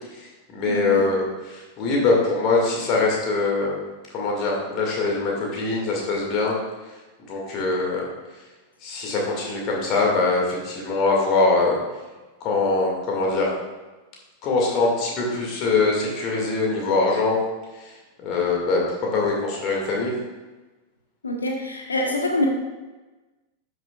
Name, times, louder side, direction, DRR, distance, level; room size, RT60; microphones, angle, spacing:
voice 1, 0.1-3.8 4.1-6.6 7.2-8.1 8.8-11.8 12.4-13.5 14.4-17.4 17.7-20.1, left 3 dB, 40° left, -2 dB, 2.1 m, -23 dB
voice 2, 0.6-1.0 21.2-22.5, left 1 dB, 75° left, 2 dB, 1.2 m, -25 dB
11.5 x 6.7 x 2.4 m, 1.2 s
figure-of-eight pair, 90°, 0 cm